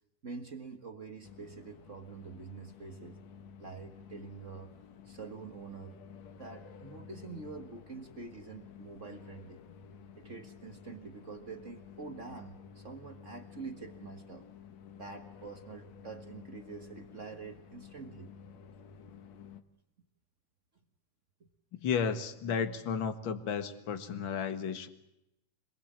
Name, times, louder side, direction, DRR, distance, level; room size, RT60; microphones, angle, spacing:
voice 1, 0.2-3.2 3.6-4.8 5.0-6.0 6.4-9.6 10.2-14.5 14.9-18.3 21.4-21.5, right 4 dB, 50° right, 6 dB, 0.8 m, -46 dB
sound 1, 1.2-19.6, left 7 dB, 60° left, 2.3 m, -52 dB
voice 2, 21.7-24.9, left 6 dB, 45° left, 10 dB, 1.9 m, -33 dB
26.5 x 20.5 x 7.5 m, 0.87 s
omnidirectional pair, 3.7 m